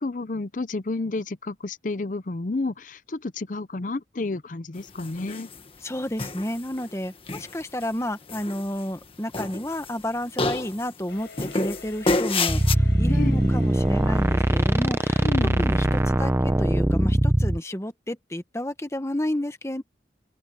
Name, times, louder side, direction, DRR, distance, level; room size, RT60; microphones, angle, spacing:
voice 1, 0.0-5.5 13.1-13.4 15.2-15.7, left 2 dB, 45° left, 0.6 m, -30 dB
sound 1, 5.0-5.6 6.2-6.8 7.3-7.9 8.3-9.1 9.3-10.1 10.4-10.9 11.4-12.7, left 3 dB, 30° left, 1.6 m, -28 dB
voice 2, 5.8-15.3 15.6-19.8, left 1 dB, 15° left, 1.2 m, -31 dB
sound 2, 11.1-16.1, left 4 dB, 90° left, 4.5 m, -47 dB
sound 3, 12.5-17.6, right 1 dB, 15° right, 0.8 m, -21 dB
open air
head